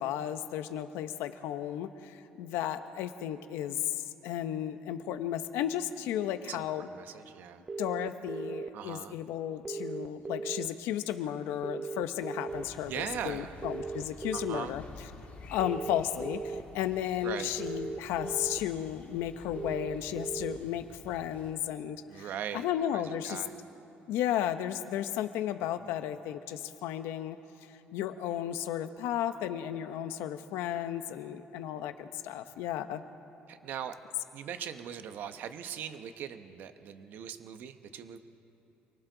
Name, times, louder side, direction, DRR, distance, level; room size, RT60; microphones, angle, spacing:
voice 1, 0.0-6.9 7.8-14.8 15.5-23.4 24.1-27.4 27.9-33.0, left 11 dB, 90° left, 9 dB, 1.0 m, -34 dB
voice 2, 6.5-7.6 8.7-9.2 12.9-13.6 14.3-14.8 17.2-17.5 22.1-23.5 33.5-34.0 34.3-38.2, right 9 dB, 55° right, 9 dB, 1.0 m, -40 dB
sound 1, 7.7-8.7 9.6-10.7 11.6-12.6 13.6-14.6 15.6-16.6 17.6-18.6 19.6-20.6, right 4 dB, 15° right, 0.5 m, -37 dB
sound 2, 12.5-21.5, left 4 dB, 40° left, 1.7 m, -51 dB
28.0 x 23.5 x 4.0 m, 3.0 s
cardioid pair, 170°, 4 cm